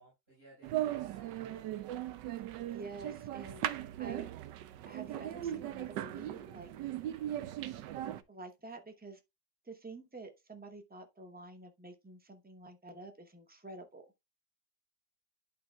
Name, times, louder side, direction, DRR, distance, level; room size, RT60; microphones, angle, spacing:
voice 1, 0.0-1.7, right 2 dB, 30° right, 5.5 m, -61 dB
sound 1, 0.6-8.2, right 12 dB, 75° right, 1.2 m, -38 dB
voice 2, 2.7-3.7 4.0-4.3 4.9-6.7 8.3-9.2 9.6-14.1, right 3 dB, 10° right, 0.4 m, -49 dB
11.5 x 4.6 x 2.3 m
omnidirectional pair, 2.0 m